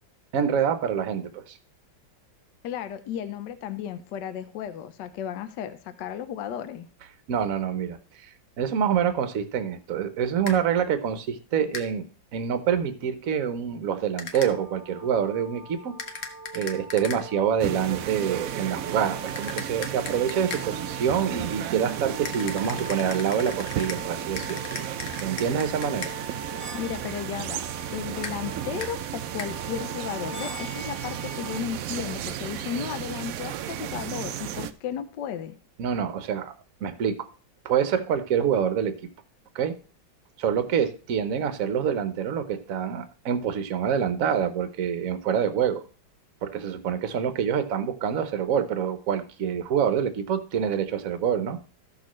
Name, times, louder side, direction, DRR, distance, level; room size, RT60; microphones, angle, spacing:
voice 1, 0.3-1.6 7.3-15.9 16.2-16.3 16.5-24.6 25.2-26.1 35.8-36.5 36.8-37.2 37.6-38.9 39.5-39.7 40.4-45.8 46.4-51.6, right 8 dB, 55° right, 10 dB, 1.1 m, -26 dB
voice 2, 2.6-6.9 26.7-27.6 27.9-35.5, left 9 dB, 75° left, 11 dB, 1.3 m, -34 dB
sound 1, 10.5-10.6 11.7-11.9 14.2-14.5 16.0-17.2 19.4-20.7 22.2-24.0 24.4-26.1 28.2-28.4 28.8-28.9 29.4-29.5, left 5 dB, 50° left, 1.1 m, -37 dB
sound 2, 14.3-31.6, right 2 dB, 10° left, 1.6 m, -42 dB
sound 3, 17.6-34.7, right 11 dB, 85° right, 0.7 m, -34 dB
14.0 x 6.3 x 3.1 m, 0.37 s
omnidirectional pair, 2.1 m